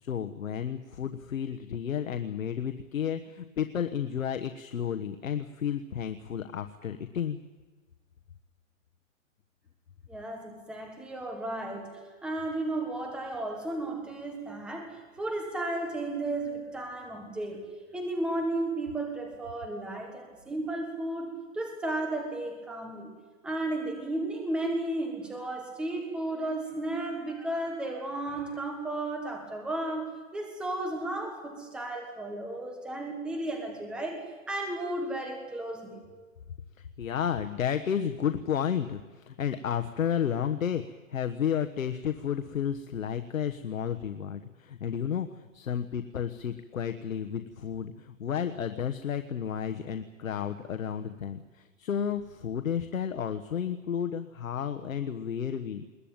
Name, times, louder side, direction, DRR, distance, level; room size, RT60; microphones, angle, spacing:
voice 1, 0.0-7.4 37.0-40.8 41.1-55.9, left 8 dB, 80° left, 9 dB, 1.4 m, -32 dB
voice 2, 10.1-11.9 12.2-17.6 17.9-23.1 23.4-36.0, right 2 dB, ahead, 3 dB, 1.5 m, -34 dB
21.5 x 19.0 x 9.0 m, 1.3 s
hypercardioid pair, 175°, 40 cm